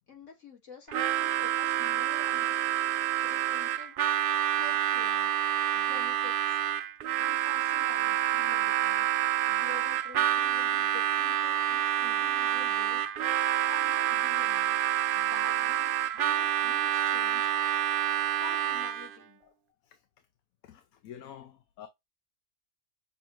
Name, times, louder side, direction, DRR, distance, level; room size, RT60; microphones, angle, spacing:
voice 1, 0.1-2.5 3.2-4.2 4.5-5.3 5.7-6.6 7.2-14.8 15.1-17.7 18.4-19.4, left 5 dB, 55° left, 2.1 m, -49 dB
Harmonica, 0.9-19.2, right 11 dB, 75° right, 0.5 m, -28 dB
voice 2, 20.6-21.9, left 9 dB, 80° left, 1.1 m, -48 dB
6.9 x 2.6 x 2.9 m
omnidirectional pair, 1.5 m